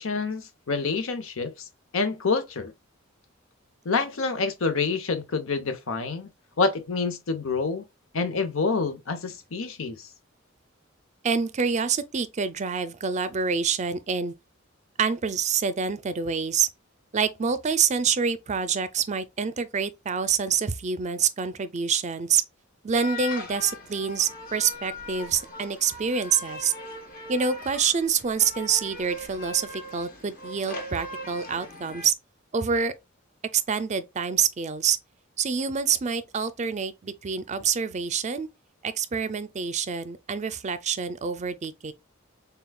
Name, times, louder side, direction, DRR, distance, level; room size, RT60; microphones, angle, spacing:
voice 1, 0.0-1.5 1.9-2.7 3.8-6.3 6.6-7.8 8.1-10.1, left 4 dB, 80° left, 0.8 m, -27 dB
voice 2, 11.2-14.3 15.0-16.7 17.1-22.4 22.8-26.7 27.3-32.1 32.5-32.9 33.5-35.0 35.4-38.5 38.8-41.9, right 6 dB, 35° right, 0.5 m, -26 dB
sound 1, 22.9-32.1, left 2 dB, 45° left, 1.2 m, -40 dB
6.8 x 2.3 x 2.3 m
head